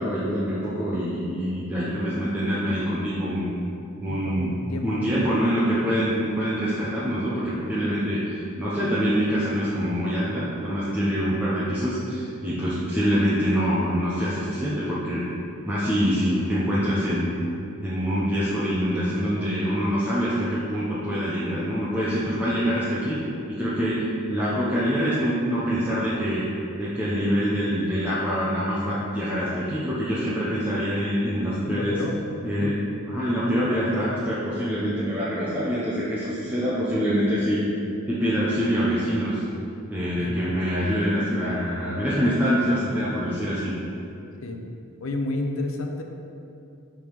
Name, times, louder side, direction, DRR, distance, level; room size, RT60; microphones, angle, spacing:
voice 1, 0.0-3.5 4.0-4.5 4.8-15.2 15.7-17.4 17.8-23.2 23.5-26.4 26.8-32.0 32.4-32.8 33.1-37.7 38.1-39.4 39.9-43.7, equal, 5° right, -9 dB, 0.6 m, -25 dB
voice 2, 4.1-5.1 31.6-32.2 32.6-32.9 40.2-40.4 44.4-44.6 45.0-46.0, left 2 dB, 65° left, 3 dB, 0.6 m, -31 dB
6.9 x 3.6 x 4.6 m, 2.7 s
head